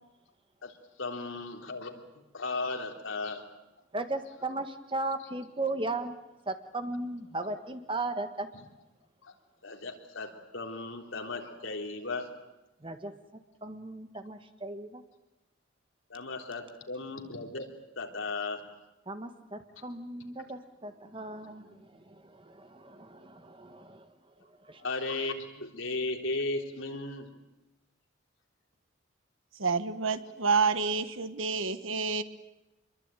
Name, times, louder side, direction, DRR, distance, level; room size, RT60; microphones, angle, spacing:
voice 1, 1.0-2.0 2.3-3.4 8.5-8.6 9.2-9.3 9.6-12.3 16.1-17.7 18.0-18.6 24.8-27.3, left 3 dB, 75° left, 3 dB, 3.6 m, -36 dB
voice 2, 3.9-6.2 6.4-8.5 12.8-13.1 13.6-15.0 19.1-24.1 24.6-24.8, right 2 dB, 25° right, 8 dB, 1.6 m, -36 dB
voice 3, 29.6-32.2, right 5 dB, 80° right, 12 dB, 1.4 m, -28 dB
25.5 x 22.5 x 9.1 m, 0.98 s
head